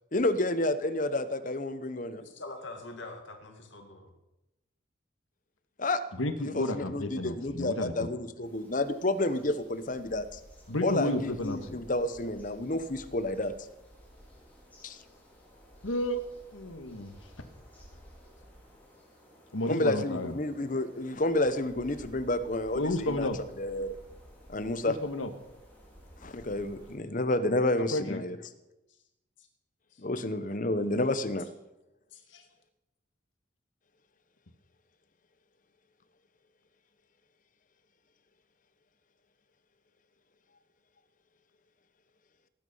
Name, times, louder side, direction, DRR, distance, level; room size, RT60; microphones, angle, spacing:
voice 1, 0.1-2.2 5.8-6.0 6.5-10.4 10.8-13.5 14.8-15.0 19.7-23.3 23.6-24.0 24.5-24.9 26.2-28.4 30.0-31.5, left 2 dB, 40° left, 12 dB, 0.9 m, -30 dB
voice 2, 2.2-4.1 28.9-29.0 29.4-29.5 29.9-30.0 32.1-32.5, left 2 dB, 65° left, 3 dB, 2.2 m, -45 dB
voice 3, 6.1-8.1 10.7-11.8 15.8-16.2 16.5-17.1 19.5-20.4 22.7-23.4 24.9-25.3 27.7-28.2, left 1 dB, 85° left, 8 dB, 1.6 m, -32 dB
sound 1, 8.4-27.0, equal, 10° left, 4.2 m, -54 dB
18.0 x 9.5 x 5.5 m, 0.95 s
head